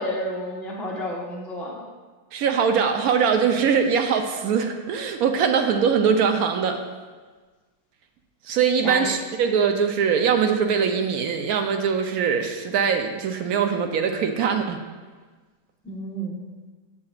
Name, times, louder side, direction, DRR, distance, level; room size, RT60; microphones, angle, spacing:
voice 1, 0.0-1.8 8.8-9.1 15.8-16.4, equal, ahead, -4 dB, 0.6 m, -30 dB
voice 2, 2.3-6.8 8.5-14.8, right 6 dB, 70° right, 5 dB, 1.0 m, -22 dB
8.5 x 7.1 x 2.4 m, 1.4 s
omnidirectional pair, 1.8 m